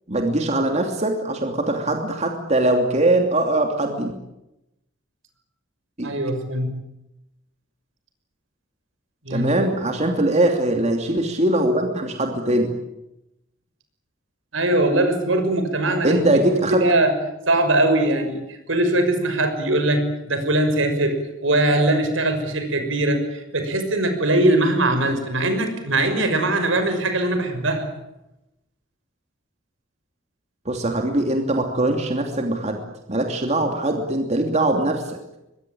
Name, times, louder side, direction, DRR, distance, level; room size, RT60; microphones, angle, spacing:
voice 1, 0.1-4.1 6.0-6.1 9.3-12.7 16.0-16.8 30.6-32.8 33.1-35.2, right 1 dB, 35° right, 3 dB, 2.9 m, -21 dB
voice 2, 6.0-6.7 9.2-9.7 14.5-16.4 16.7-17.1 17.5-27.9, right 1 dB, 75° right, 7 dB, 6.0 m, -21 dB
23.5 x 22.5 x 8.8 m, 0.89 s
head